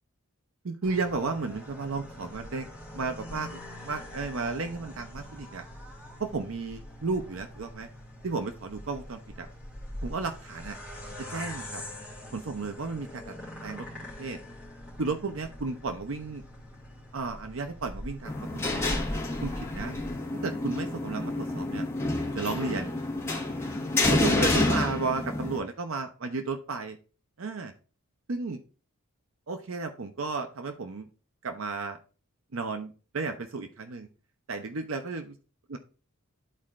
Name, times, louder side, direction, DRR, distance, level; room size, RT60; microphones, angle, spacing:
voice 1, 0.6-2.7 2.9-5.6 6.2-7.9 8.2-9.5 10.0-10.8 11.3-11.8 12.3-13.3 13.6-13.9 14.2-14.4 15.0-16.4 17.1-19.0 19.4-20.0 20.3-21.9 22.3-22.9 24.1-27.0 27.4-27.7 28.3-28.6 29.5-31.1 31.4-32.0 32.5-34.1 34.5-35.4 35.7-35.8, right 4 dB, 65° right, 7 dB, 0.6 m, -33 dB
sound 1, 0.8-20.1, left 1 dB, 5° right, 2.2 m, -42 dB
sound 2, 18.2-25.6, left 2 dB, 10° left, 1.4 m, -28 dB
12.5 x 4.2 x 2.4 m, 0.36 s
head